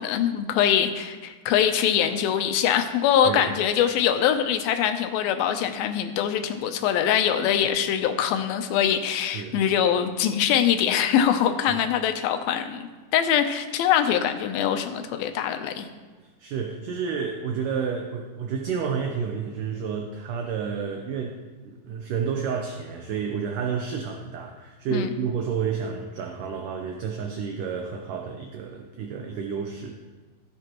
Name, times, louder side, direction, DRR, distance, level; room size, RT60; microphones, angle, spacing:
voice 1, 0.0-15.9 24.9-25.1, left 9 dB, 80° left, 7 dB, 2.5 m, -23 dB
voice 2, 9.3-9.7 11.7-11.8 16.2-21.4 21.6-30.0, right 6 dB, 75° right, 3 dB, 2.0 m, -30 dB
16.5 x 8.1 x 3.0 m, 1.3 s
omnidirectional pair, 4.4 m